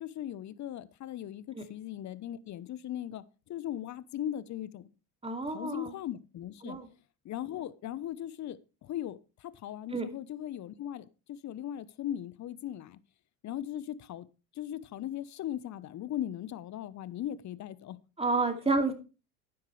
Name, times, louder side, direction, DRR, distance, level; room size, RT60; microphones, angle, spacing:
voice 1, 0.0-3.2 3.5-4.8 5.5-6.8 7.2-9.2 9.6-13.0 13.4-14.3 14.6-18.0, left 11 dB, 40° left, 1.0 m, -38 dB
voice 2, 5.2-5.9 6.6-6.9 9.9-10.1 18.2-18.9, right 3 dB, 15° right, 2.6 m, -30 dB
12.5 x 9.6 x 3.3 m
hypercardioid pair, 75°, 42 cm